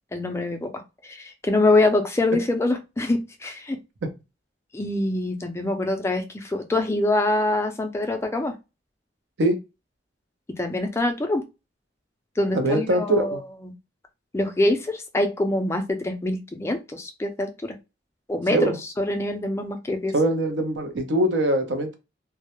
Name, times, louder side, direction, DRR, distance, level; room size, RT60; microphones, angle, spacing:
voice 1, 0.1-0.7 1.0-3.8 4.7-8.5 10.6-11.4 12.4-13.4 14.3-17.8 18.3-20.1, left 2 dB, 15° left, 5 dB, 0.3 m, -24 dB
voice 2, 12.5-13.4 18.5-18.8 20.1-22.0, right 1 dB, 75° right, 6 dB, 0.6 m, -22 dB
2.2 x 2.0 x 2.8 m, 0.26 s
head